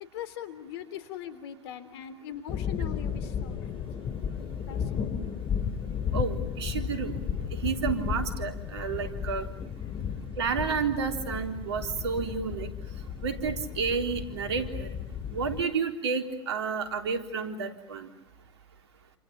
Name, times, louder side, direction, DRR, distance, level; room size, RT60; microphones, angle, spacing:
voice 1, 0.1-3.8 4.7-5.2 9.9-10.0, left 10 dB, 70° left, 13 dB, 3.4 m, -41 dB
sound 1, 2.5-15.6, left 7 dB, 40° left, 2.7 m, -34 dB
voice 2, 6.1-7.2 7.5-9.5 10.4-12.7 13.2-14.9 15.3-18.1, right 5 dB, 80° right, 6 dB, 3.7 m, -30 dB
28.5 x 27.5 x 7.3 m, 0.81 s
hypercardioid pair, 85°, 14 cm